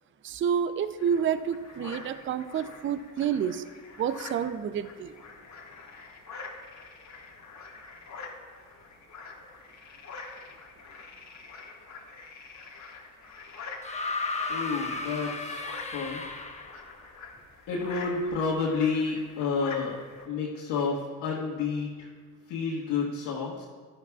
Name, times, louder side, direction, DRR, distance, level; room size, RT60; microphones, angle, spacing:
voice 1, 0.2-3.6 4.0-5.2, right 8 dB, 30° right, 13 dB, 0.5 m, -29 dB
sound 1, 1.0-20.3, left 4 dB, 40° left, 1.8 m, -46 dB
sound 2, 13.8-16.9 18.1-18.2, left 3 dB, 15° left, 1.1 m, -34 dB
voice 2, 14.5-16.2 17.7-20.0 20.3-22.1 22.5-23.7, left 4 dB, 65° left, -6 dB, 1.7 m, -30 dB
14.0 x 11.0 x 2.4 m, 1.5 s
hypercardioid pair, 70°, 43 cm